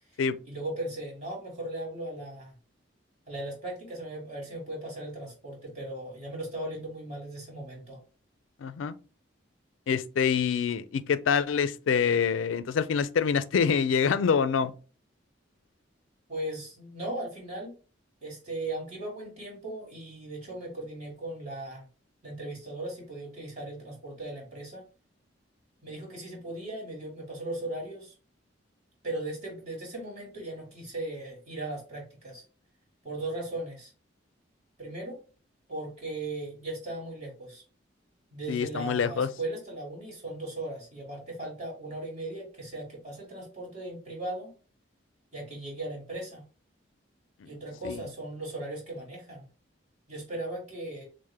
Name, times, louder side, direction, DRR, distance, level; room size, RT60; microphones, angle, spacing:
voice 1, 0.5-2.5 3.3-8.0 16.3-17.7 18.2-21.8 22.2-24.8 25.8-28.1 29.0-32.4 33.0-33.9 34.8-35.2 35.7-37.6 38.3-44.5 45.3-46.4 47.4-49.5 50.1-51.0, right 1 dB, 35° right, 2.1 m, -37 dB
voice 2, 8.6-9.0 9.9-14.7 38.5-39.3 47.4-47.5 47.8-48.0, left 6 dB, 90° left, 0.4 m, -26 dB
6.3 x 2.1 x 3.3 m
head